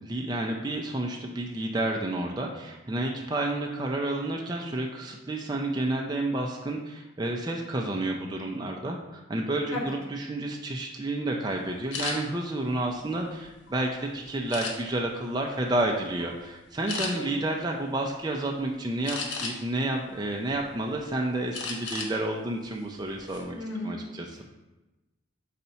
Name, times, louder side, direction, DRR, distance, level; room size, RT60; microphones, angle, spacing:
voice 1, 0.0-23.6 23.8-24.4, right 1 dB, 20° right, 1 dB, 0.4 m, -30 dB
sound 1, 11.9-12.2 12.8-13.8 14.5-15.1 15.6-15.8 16.2-16.4 16.9-17.1 19.0-19.8 20.3-21.0 21.5-22.1 22.5-22.7 23.1-23.4, left 4 dB, 65° left, 0.8 m, -34 dB
voice 2, 23.5-24.2, left 1 dB, 80° left, -3 dB, 1.4 m, -35 dB
4.1 x 4.1 x 5.6 m, 1.1 s
head